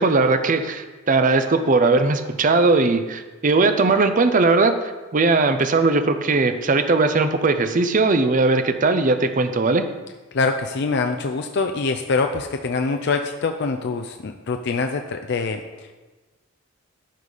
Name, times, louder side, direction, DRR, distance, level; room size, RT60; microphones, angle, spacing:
voice 1, 0.0-4.7 5.1-9.8, right 3 dB, 40° right, 8 dB, 0.6 m, -19 dB
voice 2, 10.3-15.6, left 4 dB, 55° left, 5 dB, 0.5 m, -24 dB
12.0 x 4.1 x 4.9 m, 1.2 s
head